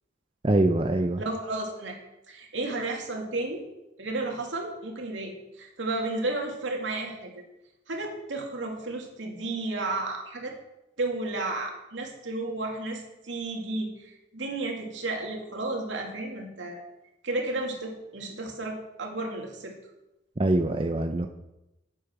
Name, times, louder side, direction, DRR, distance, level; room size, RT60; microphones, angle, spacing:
voice 1, 0.4-1.2 20.4-21.3, right 2 dB, 30° right, 6 dB, 0.6 m, -23 dB
voice 2, 1.2-2.0 2.3-3.7 4.0-7.4 7.9-10.5 11.0-16.8 17.2-19.7, right 2 dB, 80° right, 1 dB, 2.5 m, -33 dB
9.9 x 8.9 x 6.0 m, 0.94 s
head